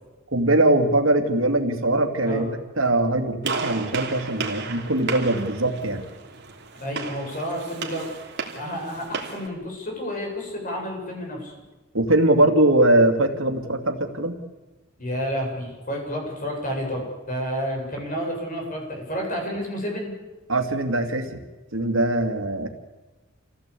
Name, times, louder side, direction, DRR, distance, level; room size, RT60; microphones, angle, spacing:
voice 1, 0.3-6.1 11.9-14.4 20.5-21.4 21.7-22.7, right 1 dB, 85° right, 6 dB, 2.5 m, -21 dB
Gunshot gunfire, 3.4-9.5, right 4 dB, 60° right, 3.1 m, -33 dB
voice 2, 6.8-8.1 8.6-11.5 15.0-20.1, equal, 45° left, 1 dB, 7.8 m, -30 dB
27.0 x 16.5 x 8.5 m, 1.2 s
head